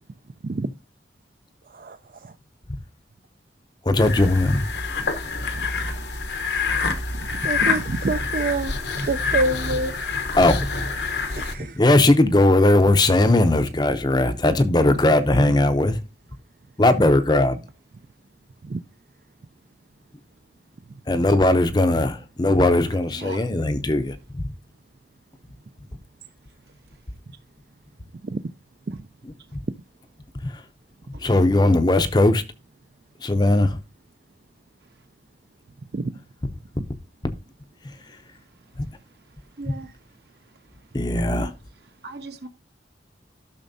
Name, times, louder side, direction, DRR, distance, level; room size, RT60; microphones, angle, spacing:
voice 1, 1.7-2.3 5.0-6.1 6.6-6.7 7.0-10.3 11.2-11.8 14.9-15.0 18.6-18.8 20.9-21.0 28.2-28.4 28.9-29.1 35.9-36.1, right 3 dB, 50° right, 0.4 m, -29 dB
voice 2, 3.9-4.6 10.4-10.6 11.8-16.0 16.8-17.6 21.1-24.2 30.4-30.5 31.2-32.4 33.2-33.8 38.8-38.9 40.9-41.5, left 2 dB, 25° left, 0.6 m, -18 dB
sound 1, 4.0-11.5, left 4 dB, 75° left, 1.0 m, -27 dB
voice 3, 22.9-23.5 23.9-24.0 31.1-31.2 39.6-39.9 41.2-41.5 41.8-42.5, right 2 dB, 70° right, 1.3 m, -39 dB
12.5 x 6.3 x 2.7 m
head